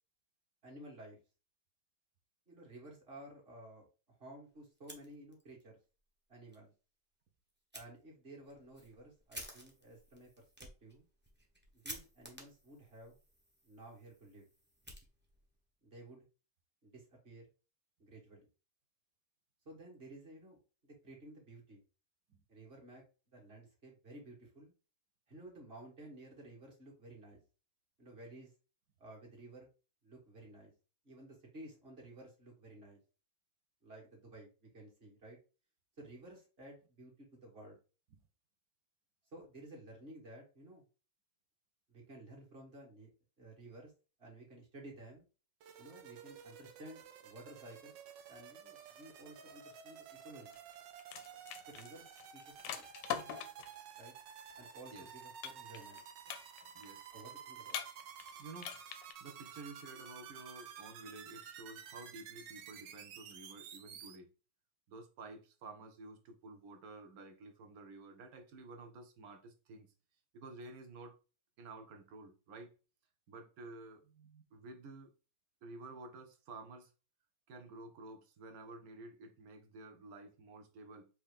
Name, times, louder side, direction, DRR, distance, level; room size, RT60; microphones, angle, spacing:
voice 1, 0.6-1.2 2.5-5.8 6.3-6.7 7.7-11.1 11.7-13.2 13.6-14.5 15.8-16.3 16.8-17.5 18.0-18.5 19.6-21.8 22.5-23.0 23.3-24.7 25.3-27.4 28.0-28.5 29.0-29.7 30.0-30.7 31.0-33.0 33.8-35.4 36.0-37.8 39.3-40.8 41.9-43.1 43.4-43.9 44.2-45.3 45.8-48.0 48.3-50.6 51.7-52.1 52.3-52.9 54.0-54.1 54.6-56.0 57.1-57.8, right 1 dB, 35° right, 1.7 m, -54 dB
Fire, 4.7-5.6 6.0-6.1 6.5-6.6 7.7-7.9 8.4-15.6, equal, 15° right, 0.3 m, -53 dB
sound 1, 45.6-64.2, right 8 dB, 85° right, 1.3 m, -52 dB
sound 2, 50.5-50.7 51.0-53.8 55.4-56.0 56.3-56.8 57.7-58.3 58.6-59.1, left 9 dB, 90° left, 1.3 m, -42 dB
voice 2, 58.4-58.7 59.2-64.3 64.9-69.9 70.3-71.1 71.6-72.7 73.3-75.1 75.6-76.9 77.5-81.1, right 2 dB, 65° right, 1.1 m, -52 dB
4.8 x 2.8 x 3.5 m
omnidirectional pair, 1.9 m